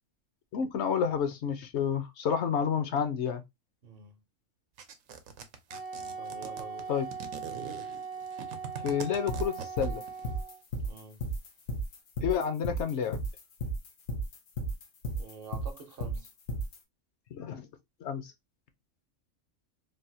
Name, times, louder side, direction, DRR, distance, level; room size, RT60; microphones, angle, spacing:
voice 1, 0.5-3.4 6.9-7.0 8.8-10.0 12.2-13.2 17.3-17.7 18.0-18.3, left 7 dB, 65° left, 0.8 m, -30 dB
voice 2, 3.8-4.2 6.1-6.9 10.8-11.3 15.2-16.3, right 4 dB, 55° right, 0.8 m, -47 dB
sound 1, 4.8-10.3, right 7 dB, 85° right, 1.0 m, -42 dB
Wind instrument woodwind instrument, 5.7-10.6, right 5 dB, 10° right, 0.5 m, -40 dB
sound 2, 9.3-16.8, right 1 dB, 85° left, 1.2 m, -33 dB
3.4 x 2.2 x 2.6 m
omnidirectional pair, 1.3 m